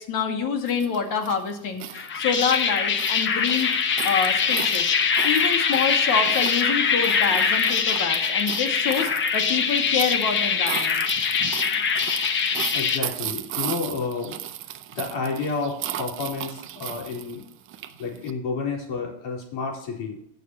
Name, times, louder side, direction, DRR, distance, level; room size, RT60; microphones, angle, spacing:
voice 1, 0.0-3.7 4.0-4.9 5.2-11.0, left 6 dB, 45° left, 4 dB, 2.2 m, -26 dB
sound 1, 0.7-18.3, right 12 dB, 30° right, 0.6 m, -36 dB
sound 2, 1.9-13.0, left 6 dB, 25° left, 0.9 m, -23 dB
voice 2, 12.7-14.3 14.9-17.4 18.0-20.2, left 4 dB, 65° left, -1 dB, 4.0 m, -30 dB
20.0 x 6.9 x 3.0 m, 0.75 s
supercardioid pair, 145°, 45 cm